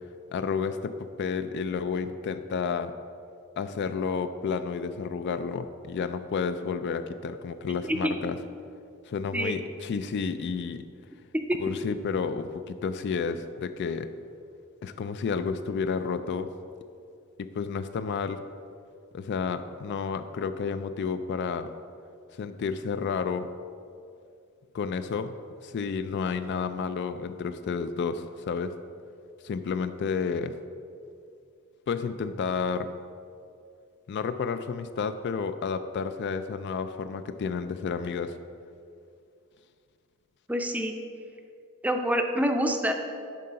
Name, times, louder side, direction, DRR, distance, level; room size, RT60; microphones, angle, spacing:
voice 1, 0.3-2.9 3.6-8.4 9.1-10.8 11.6-14.1 14.8-16.5 17.4-18.4 19.1-21.7 22.4-23.5 24.7-25.4 25.6-28.8 29.4-30.6 31.9-32.9 34.1-38.4, left 5 dB, 55° left, 10 dB, 0.3 m, -31 dB
voice 2, 40.5-40.9 41.8-42.9, equal, 5° right, 4 dB, 0.5 m, -26 dB
10.5 x 3.7 x 5.6 m, 2.4 s
head